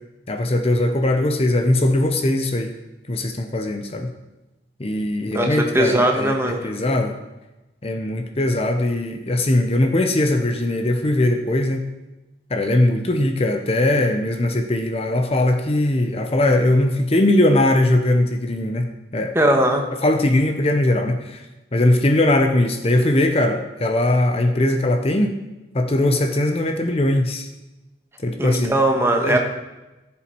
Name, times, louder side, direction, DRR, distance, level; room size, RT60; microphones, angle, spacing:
voice 1, 0.3-2.7 3.1-4.1 4.8-7.2 7.8-11.8 12.5-19.3 20.0-21.4 21.7-25.4 25.7-27.5 28.2-28.7 29.1-29.4, left 1 dB, 35° left, 5 dB, 0.8 m, -20 dB
voice 2, 5.3-6.7 19.3-19.9 28.4-29.4, right 1 dB, 15° right, 2 dB, 1.3 m, -19 dB
14.5 x 7.2 x 4.6 m, 1.0 s
head